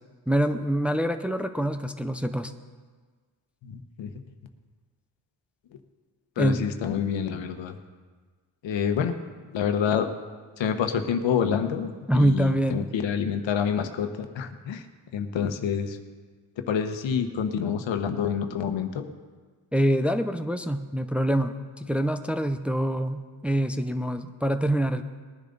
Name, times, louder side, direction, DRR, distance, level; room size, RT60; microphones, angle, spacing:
voice 1, 0.3-2.5 6.4-6.6 12.1-12.9 19.7-25.0, right 1 dB, 5° right, 7 dB, 0.5 m, -25 dB
voice 2, 3.6-4.1 6.4-7.8 8.6-9.1 9.5-10.1 10.6-14.9 15.1-16.0 16.7-19.0, left 7 dB, 80° left, 7 dB, 1.2 m, -27 dB
20.5 x 10.5 x 4.0 m, 1.5 s
cardioid pair, 110°, 44 cm